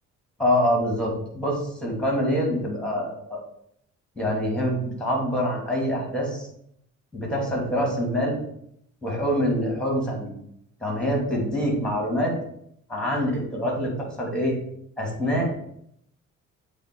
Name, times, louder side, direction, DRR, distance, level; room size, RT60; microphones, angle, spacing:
voice 1, 0.4-3.4 4.2-6.5 7.1-8.4 9.0-10.3 10.8-12.3 12.9-14.6 15.0-15.5, equal, 5° left, -1 dB, 2.8 m, -25 dB
7.9 x 3.4 x 4.8 m, 0.72 s
cardioid pair, 90°, 30 cm